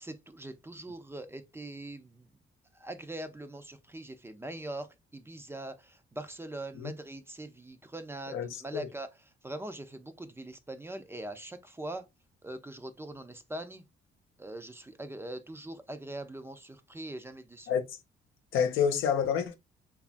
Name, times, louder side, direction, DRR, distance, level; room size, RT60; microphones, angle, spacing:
voice 1, 0.0-2.3 2.7-9.1 9.4-12.1 12.4-13.8 14.4-17.7, right 1 dB, 10° right, 0.4 m, -42 dB
voice 2, 8.3-8.9 17.7-17.8 18.5-19.6, left 7 dB, 85° left, 0.6 m, -28 dB
2.9 x 2.3 x 2.4 m
cardioid pair, 90°, 20 cm